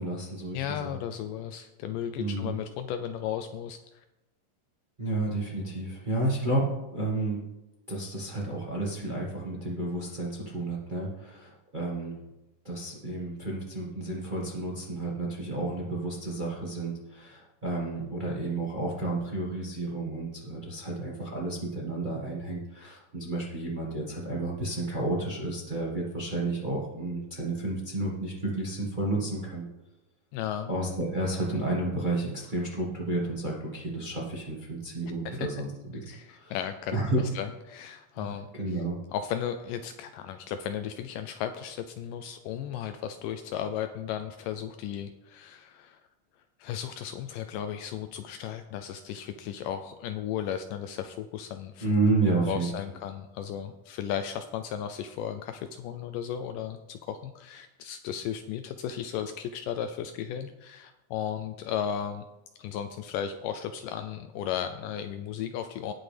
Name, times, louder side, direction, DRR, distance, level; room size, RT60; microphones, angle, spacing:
voice 1, 0.0-0.9 2.2-2.5 5.0-7.4 7.9-12.2 12.6-29.7 30.7-36.5 36.9-37.2 38.2-39.0 51.8-52.7, right 2 dB, 55° right, -3 dB, 0.5 m, -31 dB
voice 2, 0.5-4.1 30.3-30.7 35.3-35.4 36.1-37.0 37.4-38.5 39.1-46.0 46.6-51.9 52.5-62.3 62.6-65.9, left 9 dB, 80° left, 8 dB, 2.1 m, -35 dB
18.5 x 6.3 x 3.4 m, 0.98 s
omnidirectional pair, 4.0 m